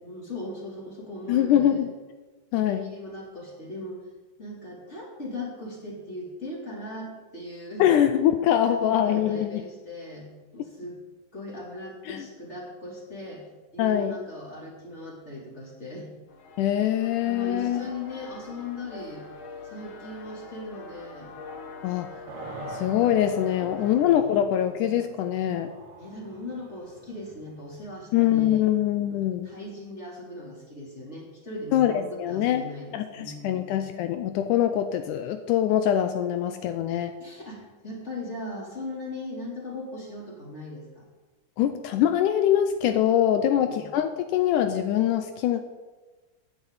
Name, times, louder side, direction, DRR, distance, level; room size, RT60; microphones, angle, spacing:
voice 1, 0.0-1.8 2.5-4.0 4.4-8.0 8.5-11.0 11.3-13.4 13.7-16.1 17.2-19.2 19.6-21.3 23.6-24.0 24.5-24.6 26.0-28.7 29.1-33.6 37.2-41.1 43.3-43.9, left 1 dB, 20° left, -4 dB, 3.5 m, -39 dB
voice 2, 1.3-1.9 2.5-2.9 7.8-9.6 12.1-12.3 13.8-14.2 16.6-17.9 21.8-22.1 22.7-25.7 28.1-29.5 31.7-32.7 32.9-37.1 41.6-45.6, left 10 dB, 80° left, 8 dB, 2.1 m, -23 dB
sound 1, 16.3-24.1, left 4 dB, 55° left, 1.5 m, -43 dB
sound 2, 22.3-29.2, right 3 dB, 80° right, 3.2 m, -45 dB
16.5 x 9.8 x 4.1 m, 1.3 s
omnidirectional pair, 3.8 m